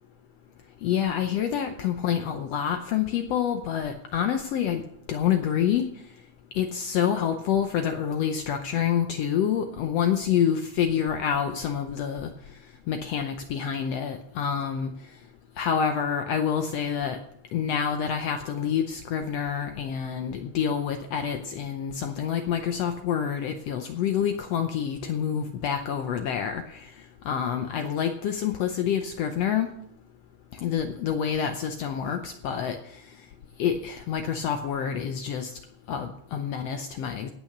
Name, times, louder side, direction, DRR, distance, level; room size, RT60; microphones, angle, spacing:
voice 1, 0.8-4.8 5.1-5.8 6.5-12.3 12.9-14.9 15.6-17.2 17.5-26.9 27.2-29.7 30.5-32.8 33.6-35.5 35.9-37.3, left 8 dB, 70° left, 7 dB, 1.6 m, -27 dB
17.0 x 6.1 x 6.6 m, 0.73 s
omnidirectional pair, 3.6 m